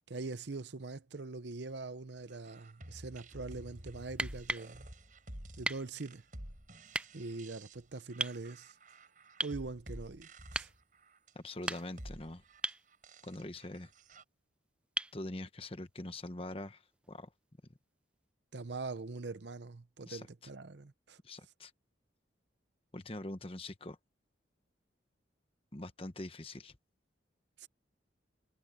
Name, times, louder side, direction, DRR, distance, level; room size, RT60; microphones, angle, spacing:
voice 1, 0.1-4.9 5.6-6.2 7.1-8.8 9.4-10.7 18.5-21.2 27.6-27.7, right 3 dB, 65° right, 0.8 m, -43 dB
sound 1, 2.3-14.2, right 1 dB, 45° right, 6.5 m, -51 dB
sound 2, 4.1-4.7 5.6-5.9 6.9-7.1 8.2-8.4 9.4-9.6 10.5-10.8 11.5-12.1 12.6-12.9 15.0-15.2 17.0-17.1, right 2 dB, 5° right, 0.3 m, -36 dB
voice 2, 11.3-12.4 13.2-13.9 15.1-16.8 17.1-17.3 20.1-20.3 21.2-21.7 22.9-24.0 25.7-26.7, left 1 dB, 30° left, 1.2 m, -43 dB
head